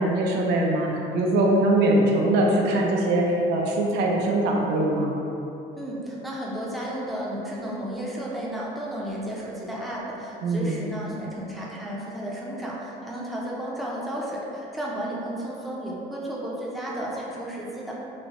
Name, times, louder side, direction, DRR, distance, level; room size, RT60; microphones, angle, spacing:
voice 1, 0.0-5.1 10.4-10.8, right 1 dB, 85° right, -1 dB, 0.5 m, -22 dB
voice 2, 5.7-17.9, right 1 dB, ahead, -6 dB, 0.6 m, -33 dB
4.0 x 2.1 x 2.8 m, 2.8 s
cardioid pair, 110°, 17 cm